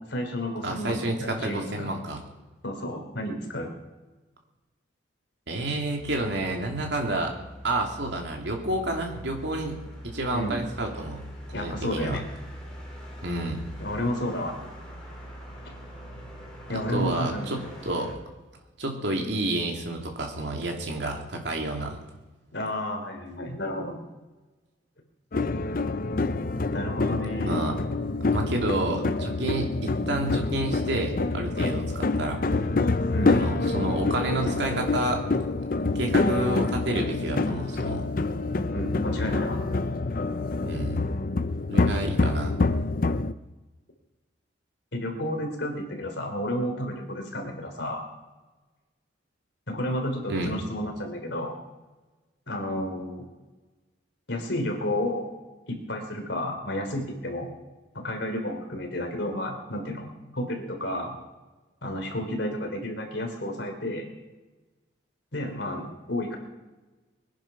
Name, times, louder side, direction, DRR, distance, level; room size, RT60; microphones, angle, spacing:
voice 1, 0.1-1.9 2.6-3.7 10.3-10.6 11.5-12.3 13.8-14.5 16.7-17.6 19.1-19.2 22.5-24.0 26.7-27.6 33.1-33.4 38.7-39.6 44.9-48.0 49.7-51.6 52.5-53.3 54.3-55.3 55.7-57.5 57.9-60.1 60.3-61.2 61.8-64.1 65.3-66.4, left 1 dB, 65° left, 3 dB, 3.4 m, -31 dB
voice 2, 0.6-2.2 5.5-7.3 7.6-9.8 10.0-11.3 11.6-12.2 13.2-13.7 16.7-18.1 18.8-22.0 27.4-27.8 28.3-32.4 33.2-35.2 35.9-38.1 40.6-41.0 41.7-42.6 50.3-50.5, right 1 dB, 60° right, 2 dB, 2.8 m, -29 dB
sound 1, 6.0-18.1, equal, 5° left, 4.0 m, -43 dB
sound 2, 25.3-43.3, left 3 dB, 45° left, 0.5 m, -26 dB
21.0 x 10.0 x 6.0 m, 1.2 s
head